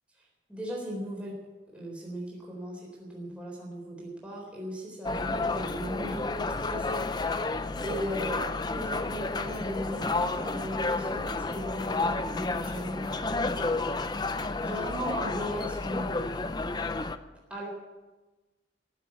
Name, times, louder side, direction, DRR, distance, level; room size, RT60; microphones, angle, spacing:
voice 1, 0.5-1.4 1.7-7.1 7.8-8.4 8.7-13.9 14.6-16.5 17.5-17.7, equal, 5° right, -4 dB, 4.0 m, -37 dB
sound 1, 5.0-17.2, left 3 dB, 25° left, 0.6 m, -31 dB
15.5 x 7.5 x 9.7 m, 1.2 s
head